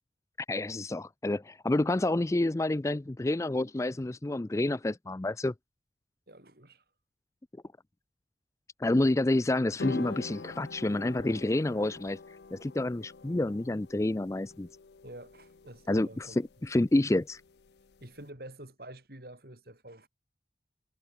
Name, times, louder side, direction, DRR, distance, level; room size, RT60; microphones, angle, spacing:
voice 1, 0.5-5.5 8.8-12.2 12.5-14.7 15.9-16.3 16.6-17.4, left 2 dB, 15° left, 0.4 m, -28 dB
voice 2, 6.3-6.8 15.0-16.4 18.0-20.1, right 1 dB, 55° right, 5.2 m, -48 dB
sound 1, 9.8-18.2, left 3 dB, 65° left, 0.6 m, -44 dB
head